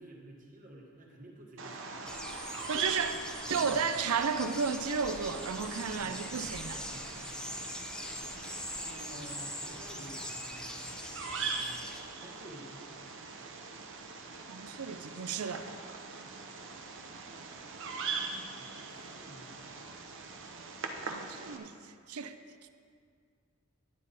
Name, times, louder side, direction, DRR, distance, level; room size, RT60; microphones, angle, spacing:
voice 1, 0.0-2.1 2.7-3.0 3.7-3.8 5.9-7.6 8.8-10.5 12.2-12.9 18.6-20.0, right 1 dB, 40° right, -1 dB, 1.6 m, -51 dB
Bird vocalization bird call bird song, 1.6-21.6, right 4 dB, 60° right, 0.8 m, -42 dB
sound 1, 2.1-12.0, left 1 dB, 5° left, 0.5 m, -43 dB
voice 2, 2.7-3.2 3.5-6.8 14.5-15.7 21.1-21.7 22.1-22.3, right 5 dB, 85° right, 10 dB, 0.6 m, -33 dB
10.5 x 9.5 x 4.2 m, 2.2 s
head